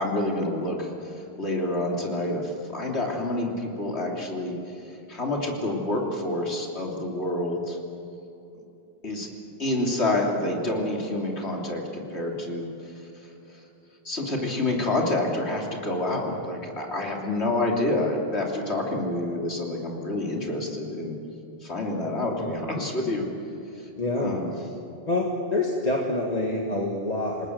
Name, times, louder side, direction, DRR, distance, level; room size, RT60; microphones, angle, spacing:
voice 1, 0.0-4.6 5.1-7.8 9.0-9.3 9.6-12.7 14.1-21.2 21.6-23.3 24.2-24.5, left 2 dB, 85° left, 0 dB, 3.4 m, -28 dB
voice 2, 24.0-24.3 25.1-27.5, left 2 dB, 40° left, -1 dB, 2.0 m, -27 dB
28.0 x 19.5 x 7.9 m, 2.9 s
omnidirectional pair, 1.1 m